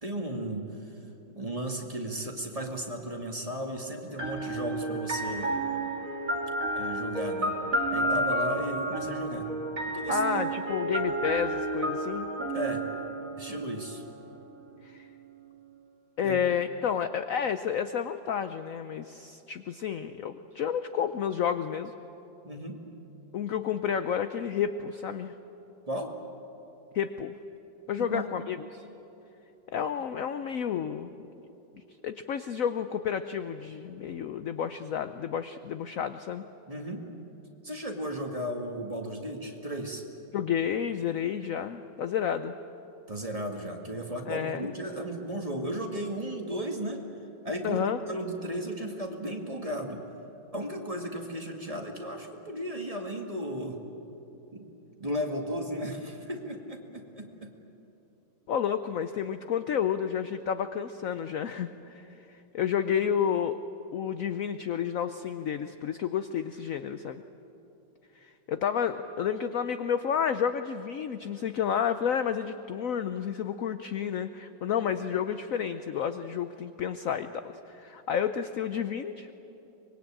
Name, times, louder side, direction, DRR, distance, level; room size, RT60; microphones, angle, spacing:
voice 1, 0.0-1.0 1.3-5.6 6.8-7.6 7.9-9.5 9.9-10.5 12.5-12.8 13.4-14.0 16.2-16.4 22.4-22.8 25.9-26.1 28.0-28.3 36.7-37.0 37.6-40.0 43.1-47.0 47.4-50.0 50.5-53.8 54.5-54.7 55.0-57.5, equal, 20° right, 2 dB, 2.0 m, -35 dB
sound 1, 4.2-14.0, right 1 dB, 45° right, 2.4 m, -31 dB
voice 2, 10.1-12.3 13.5-13.6 14.8-15.1 16.2-21.9 23.3-25.3 26.9-27.3 27.9-28.8 29.7-31.1 31.7-36.4 40.3-42.6 44.3-44.7 47.6-48.0 58.5-63.6 63.9-67.2 68.2-79.3, left 8 dB, 65° left, 10 dB, 0.8 m, -31 dB
24.5 x 22.0 x 8.8 m, 3.0 s
omnidirectional pair, 2.1 m